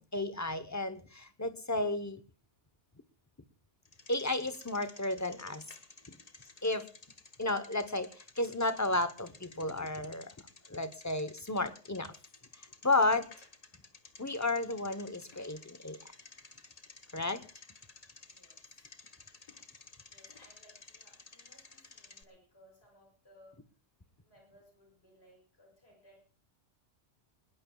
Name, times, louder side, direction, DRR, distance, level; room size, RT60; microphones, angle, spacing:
voice 1, 0.0-2.2 4.1-5.6 6.1-6.2 6.6-6.9 7.4-10.3 10.7-12.1 12.6-13.3 14.2-16.0 17.1-17.4, left 2 dB, 15° left, 12 dB, 0.8 m, -32 dB
Bicycle, 3.8-22.2, left 3 dB, 35° left, 1.2 m, -55 dB
voice 2, 18.3-18.6 20.1-23.6 24.2-26.2, equal, 60° left, 0 dB, 7.3 m, -62 dB
21.0 x 20.5 x 2.3 m, 0.39 s
omnidirectional pair, 1.2 m